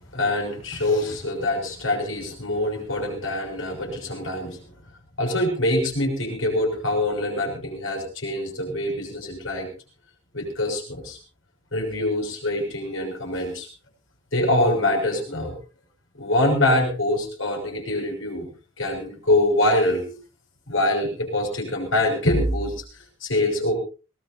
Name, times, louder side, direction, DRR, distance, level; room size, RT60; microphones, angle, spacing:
voice 1, 0.1-4.6 5.2-9.7 10.3-11.2 11.7-13.7 14.3-15.6 16.2-18.5 18.8-20.1 20.7-22.8 23.2-23.7, left 1 dB, 85° left, 3 dB, 6.4 m, -24 dB
22.0 x 18.5 x 2.7 m, 0.34 s
head